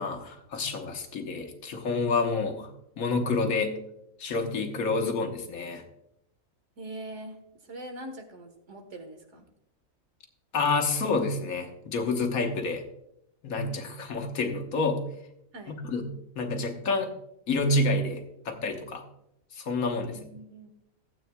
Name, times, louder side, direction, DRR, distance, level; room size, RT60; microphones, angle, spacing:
voice 1, 0.0-2.7 3.0-3.7 4.2-5.8 10.5-12.8 13.4-15.0 15.8-16.1 16.3-17.1 17.5-19.0 19.5-20.2, left 3 dB, 85° left, 4 dB, 1.6 m, -28 dB
voice 2, 6.8-9.4 15.5-15.8 20.0-20.7, right 1 dB, 60° right, 5 dB, 1.6 m, -43 dB
15.5 x 8.5 x 2.2 m, 0.79 s
omnidirectional pair, 1.4 m